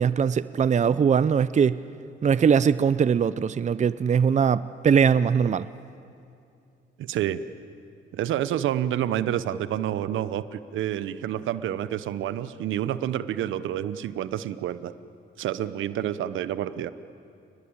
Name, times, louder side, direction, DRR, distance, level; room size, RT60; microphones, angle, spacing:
voice 1, 0.0-1.8 2.2-5.7, right 7 dB, 35° right, 15 dB, 0.6 m, -21 dB
voice 2, 7.0-7.4 8.1-14.9 15.4-16.9, right 11 dB, 80° right, 14 dB, 0.9 m, -28 dB
29.0 x 20.5 x 8.8 m, 2.5 s
cardioid pair, 90°, 20 cm